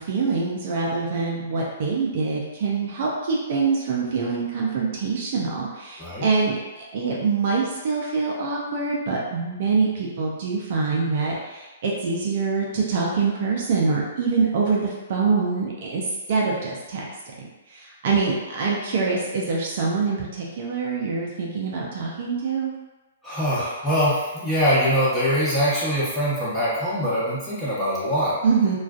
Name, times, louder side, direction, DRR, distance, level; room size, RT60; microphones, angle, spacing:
voice 1, 0.0-16.0 16.3-17.1 17.7-22.7 28.4-28.8, right 4 dB, 55° right, -3 dB, 0.5 m, -25 dB
voice 2, 23.2-28.4, equal, 5° left, -11 dB, 1.0 m, -23 dB
2.4 x 2.4 x 2.3 m, 1.1 s
hypercardioid pair, 130°, 0 cm